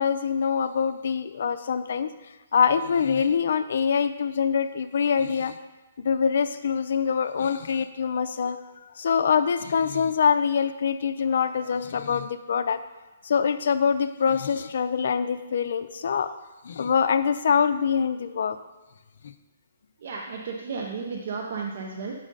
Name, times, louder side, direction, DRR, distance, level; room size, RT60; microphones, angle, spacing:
voice 1, 0.0-2.1 2.5-5.6 6.0-8.6 9.0-12.8 13.2-16.3 16.6-18.6 19.2-19.3, left 6 dB, 60° left, 11 dB, 0.4 m, -24 dB
voice 2, 20.0-22.1, right 5 dB, 50° right, 0 dB, 0.7 m, -33 dB
8.0 x 3.8 x 5.3 m, 1.1 s
hypercardioid pair, 160°, 0 cm